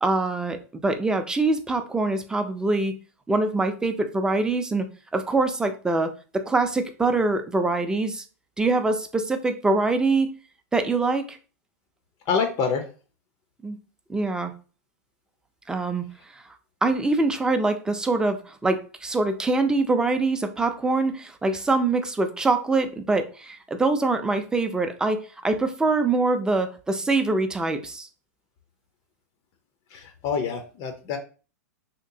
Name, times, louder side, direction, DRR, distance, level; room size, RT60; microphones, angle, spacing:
voice 1, 0.0-2.9 3.3-4.9 5.1-8.2 8.6-10.3 10.7-11.4 13.6-13.8 14.1-14.5 15.7-16.0 16.3-16.4 16.8-28.1, right 3 dB, 10° right, 6 dB, 0.5 m, -24 dB
voice 2, 12.3-12.8 29.9-31.2, left 5 dB, 45° left, 6 dB, 0.6 m, -26 dB
3.2 x 2.9 x 2.7 m, 0.36 s
hypercardioid pair, 110°, 9 cm